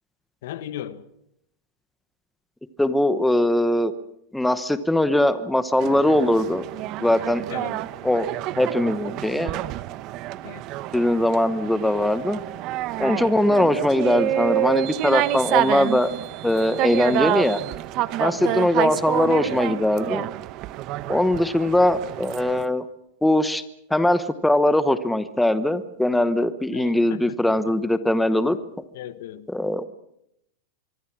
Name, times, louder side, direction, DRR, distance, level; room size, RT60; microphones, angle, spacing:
voice 1, 0.4-1.0 7.5-7.8 10.4-10.6 18.4-18.7 26.7-27.2 28.9-29.5, left 12 dB, 70° left, 1.4 m, -36 dB
voice 2, 2.8-3.9 4.3-6.6 7.0-7.4 8.0-8.3 8.6-9.5 10.9-12.4 13.0-16.1 16.4-17.6 18.2-20.3 21.1-22.9 23.2-23.6 23.9-28.6 29.5-29.9, left 1 dB, 5° left, 1.0 m, -21 dB
sound 1, 5.8-22.6, right 14 dB, 40° right, 0.9 m, -28 dB
24.5 x 23.5 x 6.1 m
supercardioid pair, 155°, 0 cm